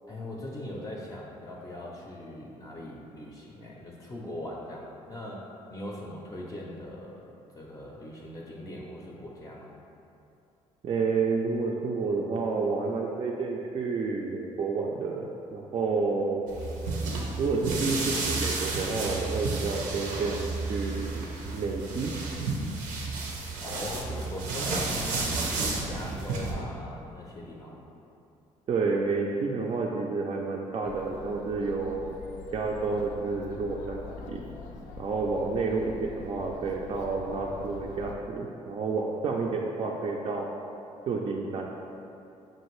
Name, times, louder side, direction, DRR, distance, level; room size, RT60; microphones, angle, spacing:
voice 1, 0.1-7.2 7.5-9.7 23.6-27.9, left 1 dB, 25° left, -3 dB, 0.5 m, -40 dB
voice 2, 10.8-16.6 17.4-21.3 21.5-22.1 28.7-32.1 32.5-34.4 35.0-40.5 41.1-41.7, right 4 dB, 45° right, -1 dB, 0.4 m, -30 dB
sound 1, 16.5-26.5, right 3 dB, 90° right, 0.6 m, -32 dB
Chatter, 30.8-38.2, left 4 dB, 80° left, 0.4 m, -44 dB
5.5 x 2.5 x 3.0 m, 2.7 s
cardioid pair, 85°, 13 cm